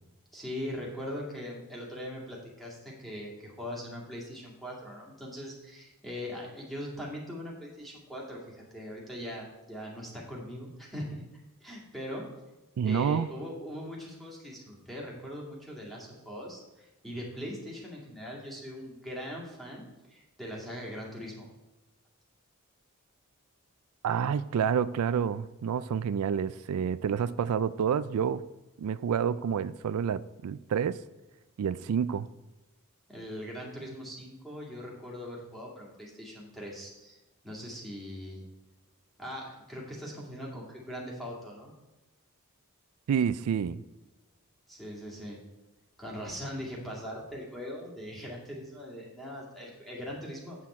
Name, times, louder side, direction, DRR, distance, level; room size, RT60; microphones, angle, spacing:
voice 1, 0.3-12.3 12.8-21.5 33.1-37.2 37.4-38.4 39.2-41.7 44.7-45.4 46.0-50.7, equal, ahead, -4 dB, 2.2 m, -41 dB
voice 2, 12.8-13.3 24.0-28.4 28.8-31.0 31.6-32.3 43.1-43.8, right 7 dB, 85° right, 15 dB, 0.3 m, -28 dB
8.3 x 7.4 x 4.3 m, 1.1 s
head